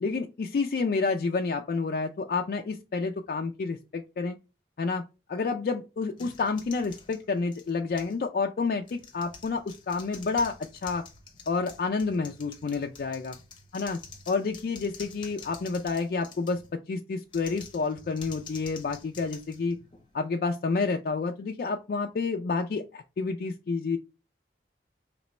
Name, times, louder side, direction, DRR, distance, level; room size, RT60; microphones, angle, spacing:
voice 1, 0.0-4.4 4.8-5.0 5.3-10.6 10.8-11.0 11.5-13.4 13.7-14.0 14.3-19.8 20.1-24.0, left 4 dB, 55° left, 3 dB, 0.3 m, -29 dB
sound 1, 6.2-8.2 8.8-16.7 17.3-20.2, left 5 dB, 25° left, 0.7 m, -48 dB
4.1 x 2.9 x 3.1 m, 0.30 s
head